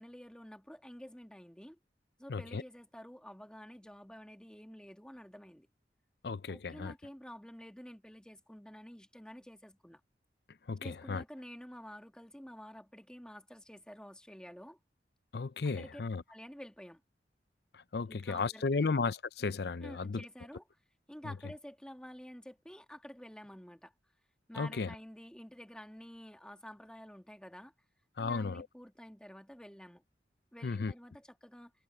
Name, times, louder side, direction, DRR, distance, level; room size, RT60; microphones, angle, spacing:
voice 1, 0.0-1.8 2.2-5.7 6.5-10.0 10.8-14.8 15.7-16.0 16.3-17.0 18.1-18.9 19.8-20.7 21.1-23.9 24.5-27.7 28.2-30.0 30.5-31.7, equal, 5° left, 1.5 m, -50 dB
voice 2, 2.3-2.6 6.2-6.9 10.7-11.2 15.3-16.2 17.7-20.2 21.2-21.3 24.6-24.9 28.2-28.7 30.6-30.9, left 4 dB, 65° left, 0.5 m, -34 dB
head